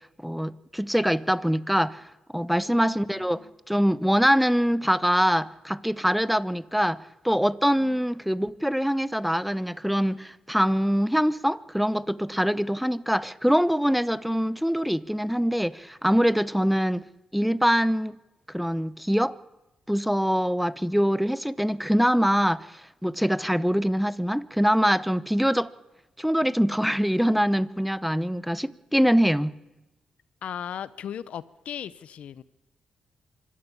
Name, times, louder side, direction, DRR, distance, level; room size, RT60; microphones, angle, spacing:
voice 1, 0.2-2.0 2.3-17.0 17.3-18.2 18.5-19.4 19.9-22.7 23.0-25.7 26.2-29.6, equal, ahead, 0.8 m, -24 dB
voice 2, 2.6-3.5 7.8-8.0 30.4-32.4, left 9 dB, 75° left, 0.8 m, -38 dB
25.0 x 12.0 x 8.6 m
supercardioid pair, 55°, 2 cm